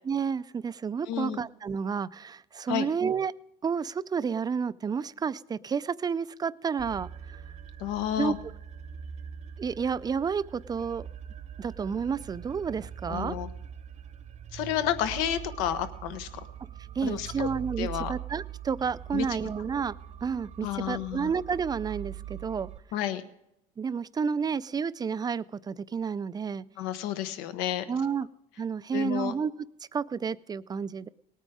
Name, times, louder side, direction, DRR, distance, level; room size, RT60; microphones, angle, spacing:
voice 1, 0.0-3.3 3.6-7.4 8.2-8.3 9.6-11.1 11.6-13.4 17.0-22.7 23.8-26.6 27.9-28.3 28.6-29.5 29.9-31.1, right 6 dB, 20° right, 16 dB, 0.4 m, -30 dB
voice 2, 1.1-1.4 2.7-2.9 7.8-8.4 13.1-13.5 14.5-16.3 17.0-17.5 17.8-18.1 19.1-19.5 20.6-21.3 22.9-23.2 26.8-27.8 28.9-29.3, left 11 dB, 85° left, 10 dB, 1.1 m, -31 dB
sound 1, 6.8-22.8, right 9 dB, 35° right, 0.9 m, -42 dB
19.0 x 9.2 x 4.9 m, 0.81 s
supercardioid pair, 110°, 20 cm